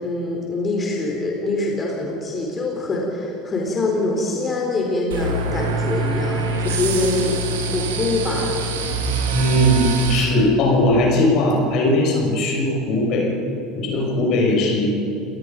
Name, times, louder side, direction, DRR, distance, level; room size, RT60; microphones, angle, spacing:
voice 1, 0.0-7.4 7.7-8.6, left 2 dB, 30° left, -1 dB, 4.4 m, -24 dB
sound 1, 5.1-10.2, right 3 dB, 75° right, 2.6 m, -24 dB
voice 2, 9.3-13.3 13.7-14.9, left 1 dB, 55° left, -1 dB, 6.2 m, -19 dB
30.0 x 18.0 x 5.4 m, 2.8 s
hypercardioid pair, 70°, 0 cm